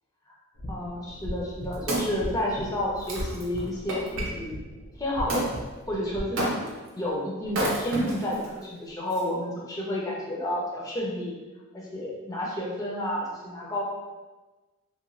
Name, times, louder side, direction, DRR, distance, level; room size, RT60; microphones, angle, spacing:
sound 1, 0.6-6.2, equal, 80° left, 0.5 m, -38 dB
voice 1, 0.7-4.5 5.0-5.5 5.9-11.3 11.7-13.8, left 1 dB, 15° left, -4 dB, 0.4 m, -31 dB
Wood, 1.3-4.3 5.3-5.5 6.4-6.9 7.5-8.5 9.1-9.2, right 1 dB, 60° right, 0.6 m, -30 dB
2.9 x 2.2 x 2.5 m, 1.2 s
head